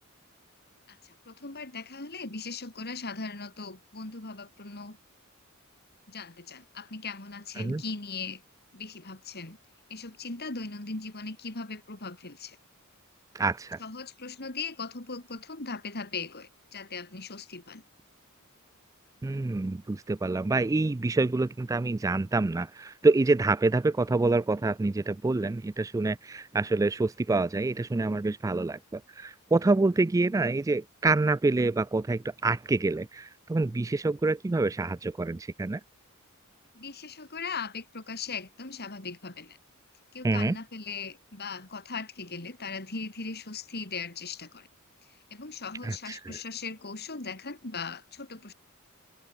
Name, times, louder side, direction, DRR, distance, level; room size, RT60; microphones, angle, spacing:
voice 1, 0.9-5.0 6.1-8.4 8.7-9.6 9.9-12.6 13.8-17.8 36.7-39.6 40.1-44.7 45.3-48.5, left 4 dB, 50° left, 3.0 m, -39 dB
voice 2, 13.3-13.8 19.2-35.8 40.2-40.6 45.8-46.4, right 3 dB, 15° right, 0.3 m, -27 dB
head